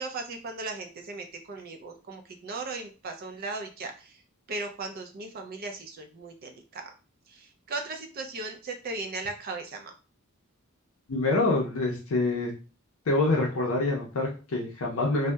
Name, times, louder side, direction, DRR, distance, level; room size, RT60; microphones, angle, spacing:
voice 1, 0.0-4.2 4.5-6.9 7.3-9.9, right 3 dB, 40° right, 5 dB, 0.4 m, -37 dB
voice 2, 11.1-12.5 13.1-15.3, left 2 dB, 65° left, -1 dB, 0.5 m, -26 dB
2.7 x 2.0 x 2.2 m, 0.34 s
head